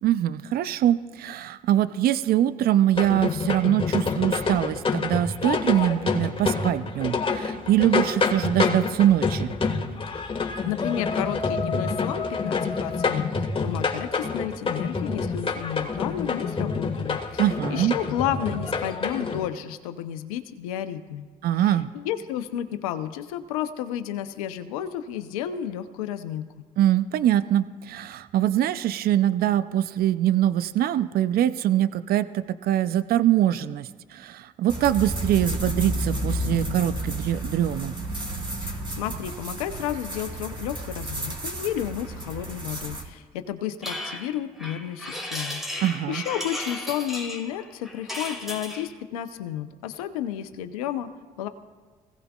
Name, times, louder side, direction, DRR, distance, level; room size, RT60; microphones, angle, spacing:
voice 1, 0.0-9.5 17.4-17.9 21.4-21.9 26.8-37.9 45.8-46.2, right 12 dB, 60° right, 14 dB, 0.6 m, -23 dB
sound 1, 2.9-19.4, left 4 dB, 30° left, 1.8 m, -27 dB
voice 2, 10.6-21.3 21.6-26.4 38.6-51.1 51.4-51.5, left 11 dB, 85° left, 10 dB, 0.8 m, -32 dB
sound 2, 34.7-43.0, right 1 dB, 25° right, 3.1 m, -31 dB
sound 3, 43.8-48.9, left 1 dB, ahead, 2.4 m, -35 dB
24.0 x 17.0 x 2.4 m, 1.4 s
hypercardioid pair, 50°, 18 cm